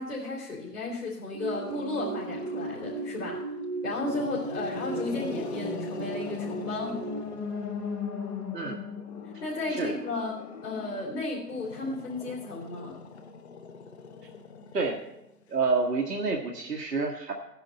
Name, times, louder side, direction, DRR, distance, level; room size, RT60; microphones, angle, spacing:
voice 1, 0.0-3.4 3.8-7.0 9.4-13.0, left 2 dB, 65° left, -5 dB, 3.7 m, -34 dB
sound 1, 1.3-7.2, right 3 dB, 30° right, 0.7 m, -36 dB
Growling, 1.5-3.3 3.8-8.0 9.0-15.5, left 5 dB, 40° left, 1.2 m, -43 dB
sound 2, 5.5-10.6, left 6 dB, 5° left, 1.1 m, -38 dB
voice 2, 15.5-17.3, right 4 dB, 70° right, 1 dB, 1.5 m, -28 dB
16.5 x 10.0 x 4.4 m, 0.89 s
figure-of-eight pair, 135°, 49 cm